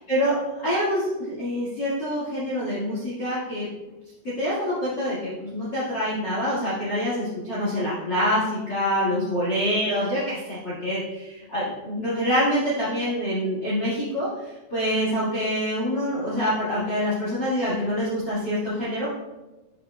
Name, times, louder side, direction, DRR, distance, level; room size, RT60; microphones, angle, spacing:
voice 1, 0.0-3.7 4.4-14.3 14.7-19.1, equal, 65° left, -9 dB, 1.1 m, -26 dB
8.9 x 6.6 x 2.2 m, 1.1 s
omnidirectional pair, 5.3 m